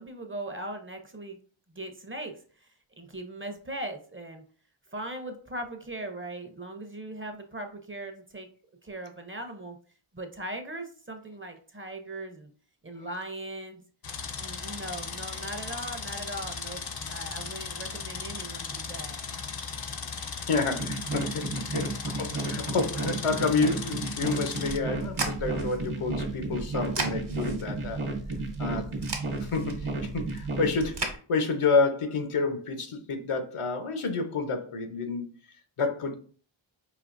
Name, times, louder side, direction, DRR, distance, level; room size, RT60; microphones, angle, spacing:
voice 1, 0.0-1.4 1.7-2.7 3.0-4.4 4.9-8.5 8.8-9.8 10.1-12.5 12.8-13.8 14.4-16.8 17.1-19.2 21.6-21.9 28.4-28.5, right 1 dB, 25° right, 0.6 m, -39 dB
sound 1, 14.0-24.8, left 5 dB, 50° left, 0.6 m, -37 dB
voice 2, 20.2-28.1 28.6-28.9 29.4-35.3 35.8-36.1, left 4 dB, 85° left, 0.9 m, -29 dB
sound 2, 20.8-30.7, right 2 dB, 75° right, 0.9 m, -33 dB
sound 3, 24.7-31.2, right 3 dB, 55° right, 1.0 m, -37 dB
4.9 x 2.8 x 2.5 m
wide cardioid pair, 85°, 50 cm